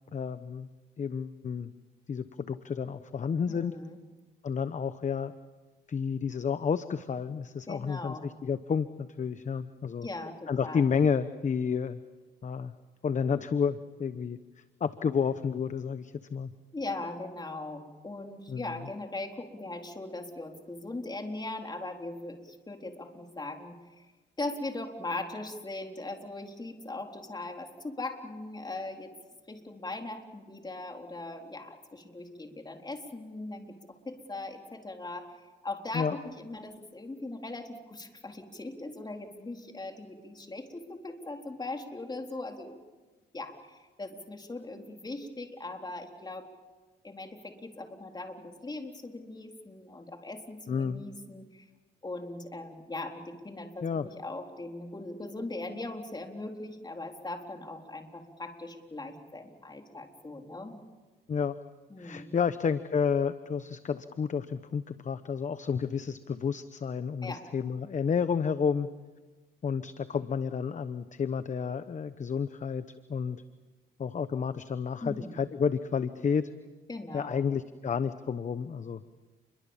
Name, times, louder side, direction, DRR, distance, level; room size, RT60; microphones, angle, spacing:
voice 1, 0.1-0.7 1.0-1.7 2.1-3.7 4.4-5.3 5.9-10.1 10.5-12.0 12.4-12.7 13.0-14.4 14.8-16.5 18.5-18.6 35.9-36.2 50.7-51.0 53.8-54.0 61.3-61.5 62.0-68.9 69.6-72.8 73.1-73.4 74.0-76.5 77.1-79.0, left 6 dB, 40° left, 12 dB, 1.0 m, -30 dB
voice 2, 3.5-4.0 7.7-8.3 10.0-10.9 16.7-24.1 24.4-29.1 29.5-35.4 35.6-42.8 43.3-46.5 47.0-51.7 52.0-60.8 61.9-62.3 67.2-67.5 75.0-75.4 76.9-77.4, left 2 dB, 20° left, 3 dB, 4.0 m, -40 dB
30.0 x 23.0 x 7.4 m, 1.2 s
cardioid pair, 90°, 20 cm